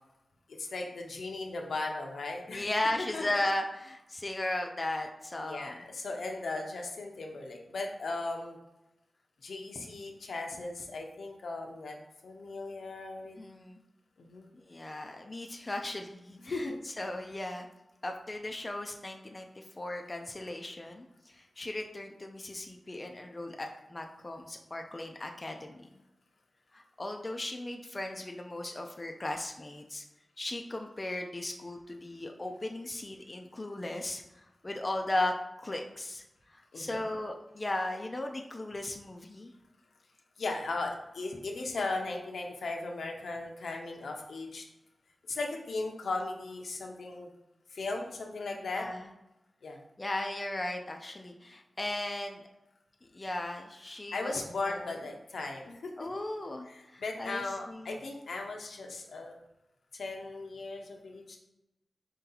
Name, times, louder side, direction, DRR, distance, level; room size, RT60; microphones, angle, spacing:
voice 1, 0.5-2.7 3.1-3.4 5.4-8.6 9.4-12.0 12.2-13.4 14.2-14.5 16.5-16.8 36.7-37.0 40.4-44.6 45.3-47.3 47.7-48.9 49.6-49.8 54.1-55.9 56.7-59.3 59.9-61.4, left 3 dB, 85° left, 2 dB, 0.7 m, -37 dB
voice 2, 2.5-5.8 13.4-13.8 14.5-16.7 17.0-17.7 18.0-25.9 26.7-30.0 30.4-36.2 36.5-39.5 48.8-49.1 50.0-52.4 53.1-54.4 54.7-55.0 56.0-58.0, left 1 dB, 25° left, 3 dB, 0.4 m, -36 dB
4.5 x 2.8 x 3.9 m, 0.92 s
wide cardioid pair, 135°, 0 cm